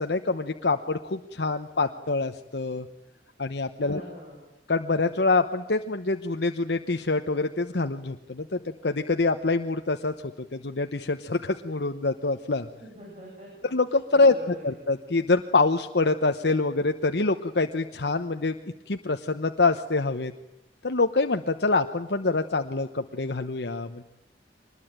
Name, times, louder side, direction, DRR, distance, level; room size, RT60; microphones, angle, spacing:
voice 1, 0.0-2.9 3.4-4.0 4.7-10.1 10.5-12.7 13.7-14.3 14.6-18.6 18.9-20.3 20.8-24.0, left 3 dB, 70° left, 7 dB, 1.0 m, -25 dB
voice 2, 3.8-4.4 12.8-13.7 14.1-14.6, equal, 35° right, -3 dB, 7.9 m, -44 dB
24.5 x 20.5 x 8.9 m, 0.90 s
head